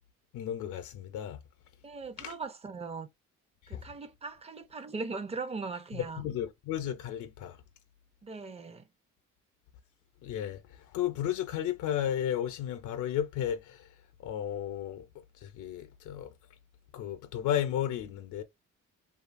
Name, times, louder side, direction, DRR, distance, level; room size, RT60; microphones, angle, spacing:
voice 1, 0.3-1.4 2.2-2.3 3.7-3.8 6.2-7.6 10.2-10.6 10.9-13.9 14.2-15.0 15.4-16.3 16.9-18.4, left 10 dB, 80° left, 0.5 m, -33 dB
voice 2, 1.8-3.1 3.7-6.3 8.2-8.9, right 4 dB, 20° right, 0.5 m, -39 dB
2.6 x 2.4 x 2.5 m
cardioid pair, 90°, 30 cm